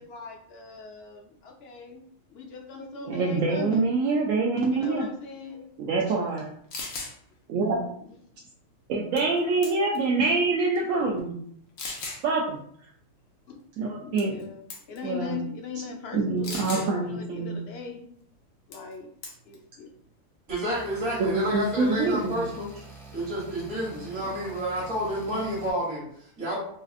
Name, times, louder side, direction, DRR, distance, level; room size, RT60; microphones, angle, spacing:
voice 1, 0.0-3.8 4.7-5.7 6.1-6.3 7.7-8.2 13.5-13.6 14.0-18.1 18.7-19.1 19.5-19.9 24.1-24.3, left 5 dB, 65° left, 2 dB, 0.7 m, -40 dB
voice 2, 3.1-5.1 5.8-6.5 7.5-7.9 8.9-11.4 12.2-12.6 13.8-14.4 15.0-15.4 16.1-17.6 21.2-22.4, right 3 dB, 80° right, -2 dB, 1.0 m, -25 dB
sound 1, 6.4-6.5 6.7-7.1 9.2-9.4 9.6-10.1 10.8-10.9 11.8-12.2 14.2-14.4 14.7-15.0 16.4-16.9 18.7-18.9 19.2-19.6, left 3 dB, 80° left, 1.1 m, -36 dB
voice 3, 20.5-22.8 23.1-26.6, equal, 65° right, -8 dB, 1.3 m, -30 dB
sound 2, 20.7-25.7, right 3 dB, 5° left, 0.5 m, -46 dB
4.1 x 2.4 x 2.5 m, 0.65 s
omnidirectional pair, 1.4 m